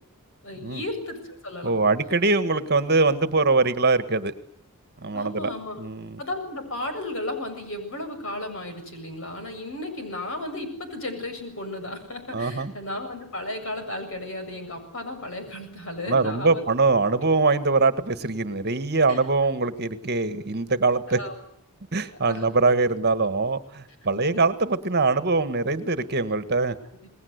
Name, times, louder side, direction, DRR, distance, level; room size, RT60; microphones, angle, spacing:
voice 1, 0.4-1.7 5.1-5.8 6.2-16.7 19.1-19.3 21.1-21.3 22.2-22.4 24.1-24.5 27.0-27.1, left 1 dB, 60° left, 6 dB, 7.5 m, -34 dB
voice 2, 1.6-4.3 5.0-5.5 5.8-6.2 12.3-12.7 16.1-21.2 21.9-26.7, right 3 dB, 45° right, 12 dB, 1.6 m, -23 dB
29.0 x 20.5 x 8.1 m, 0.68 s
head